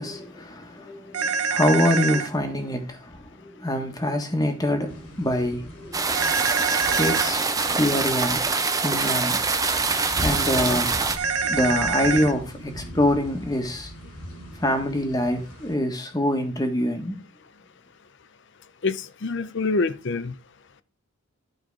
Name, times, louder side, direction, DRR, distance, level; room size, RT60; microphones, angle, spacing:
voice 1, 0.0-6.3 6.8-7.4 7.7-8.4 8.8-9.4 10.2-11.2 11.4-13.9 14.6-17.2, left 1 dB, 15° left, 1.4 m, -25 dB
sound 1, 1.1-2.3 6.1-7.3 11.2-12.3, right 5 dB, 85° right, 0.9 m, -25 dB
sound 2, 4.9-15.7, equal, 90° left, 3.9 m, -39 dB
sound 3, 5.9-11.2, right 4 dB, 15° right, 0.7 m, -24 dB
voice 2, 18.8-20.3, left 3 dB, 55° left, 0.6 m, -26 dB
12.0 x 4.6 x 4.8 m
head